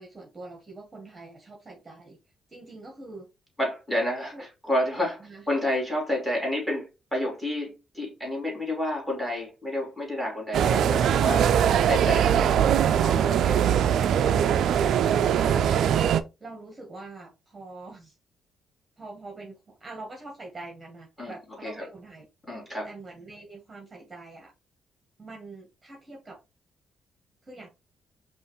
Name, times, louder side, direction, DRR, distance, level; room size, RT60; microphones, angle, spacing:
voice 1, 0.0-2.2 2.5-3.3 4.3-4.4 5.2-5.5 16.4-18.2 19.0-22.3 22.8-24.5 25.2-26.4 27.4-27.7, right 2 dB, 25° right, 1.2 m, -44 dB
voice 2, 3.6-11.5 11.9-12.3 13.0-13.6 15.4-15.6 21.2-21.3 21.6-21.7 22.5-22.9, left 1 dB, 5° left, 2.5 m, -30 dB
sound 1, 10.5-16.2, right 9 dB, 75° right, 0.3 m, -21 dB
5.4 x 2.5 x 3.0 m
cardioid pair, 105°, 0 cm